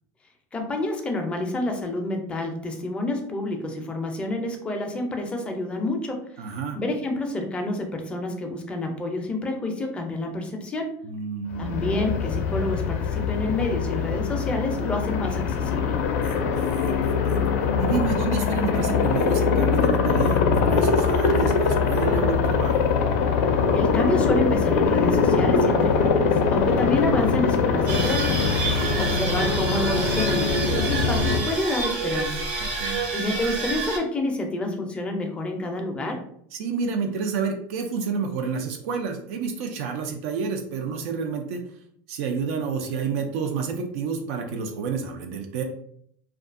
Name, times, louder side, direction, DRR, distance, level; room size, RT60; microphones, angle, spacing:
voice 1, 0.5-6.2 6.7-10.9 11.6-16.0 23.7-28.4 29.0-32.4 33.1-36.2, left 2 dB, 15° left, 3 dB, 0.4 m, -28 dB
voice 2, 6.4-6.8 11.0-11.8 16.2-17.5 17.8-22.9 28.6-29.0 32.6-33.0 36.5-41.6 42.1-45.6, right 5 dB, 75° right, 4 dB, 0.4 m, -29 dB
Aircraft, 11.5-31.4, left 5 dB, 80° left, 0.4 m, -22 dB
sound 1, 27.9-34.0, right 3 dB, 50° right, 0.7 m, -28 dB
2.6 x 2.3 x 2.4 m, 0.69 s
supercardioid pair, 150°, 8 cm